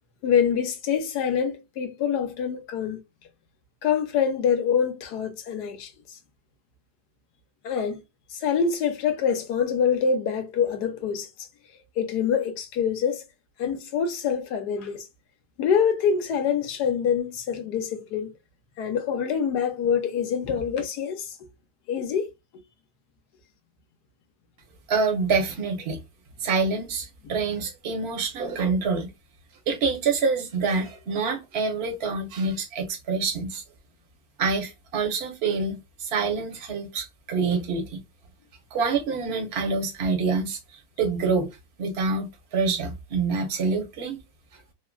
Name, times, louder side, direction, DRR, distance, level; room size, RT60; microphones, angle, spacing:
voice 1, 0.2-3.0 3.8-6.2 7.6-8.0 8.3-11.3 12.0-13.2 13.6-15.1 15.6-18.3 18.8-21.4 21.9-22.2, left 7 dB, 70° left, 1.1 m, -25 dB
voice 2, 24.9-26.0 26.4-29.1 29.7-33.6 34.4-38.0 38.7-40.6 41.0-41.5 41.8-44.2, right 4 dB, 45° right, 0.9 m, -26 dB
3.6 x 2.1 x 2.2 m
omnidirectional pair, 2.0 m